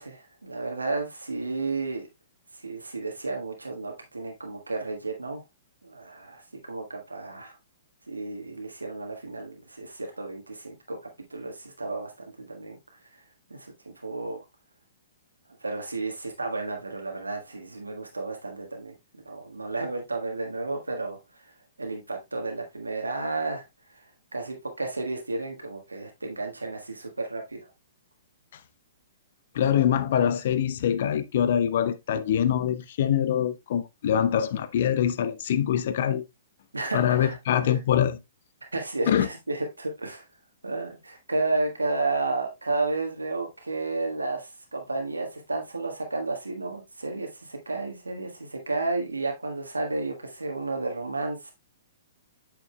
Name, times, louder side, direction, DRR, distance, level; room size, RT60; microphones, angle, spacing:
voice 1, 0.0-2.1 2.5-5.4 5.8-7.6 8.1-11.0 11.3-12.8 13.5-14.4 15.6-18.9 19.2-21.5 21.8-23.6 23.9-24.0 24.3-27.6 36.7-37.4 37.7-37.8 38.7-40.2 40.6-51.5, right 3 dB, 85° right, 1.4 m, -32 dB
voice 2, 29.5-36.2 36.9-38.2 39.1-39.3, left 9 dB, 55° left, 0.7 m, -24 dB
8.3 x 6.8 x 2.2 m
figure-of-eight pair, 115°, 0 cm